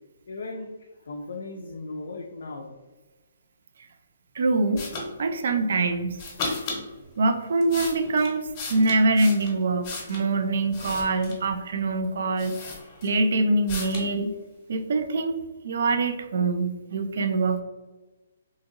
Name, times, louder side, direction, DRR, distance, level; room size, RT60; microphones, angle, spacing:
voice 1, 0.3-2.7, left 3 dB, 75° left, 1 dB, 0.3 m, -37 dB
voice 2, 4.4-4.9 5.2-6.2 7.2-12.5 13.0-14.3 14.7-15.4 15.6-17.6, right 3 dB, 65° right, 7 dB, 0.3 m, -24 dB
sound 1, 4.8-5.1 6.2-6.8 7.4-10.3 10.7-11.5 12.0-12.1 12.4-13.3 13.7-14.1, left 3 dB, 30° left, 0.8 m, -35 dB
2.8 x 2.7 x 2.5 m, 1.2 s
hypercardioid pair, 155°, 0 cm